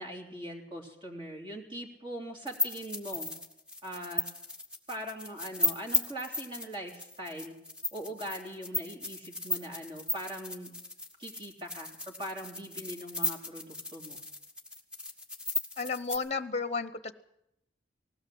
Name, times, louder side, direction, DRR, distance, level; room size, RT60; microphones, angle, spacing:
voice 1, 0.0-3.3 3.8-4.3 4.9-7.5 7.9-10.7 11.2-14.2, equal, 30° right, 1 dB, 3.3 m, -41 dB
sound 1, 2.5-16.2, left 2 dB, 5° right, 1.8 m, -35 dB
voice 2, 15.8-17.1, left 4 dB, 35° left, 13 dB, 0.9 m, -33 dB
19.5 x 17.0 x 7.8 m, 0.81 s
head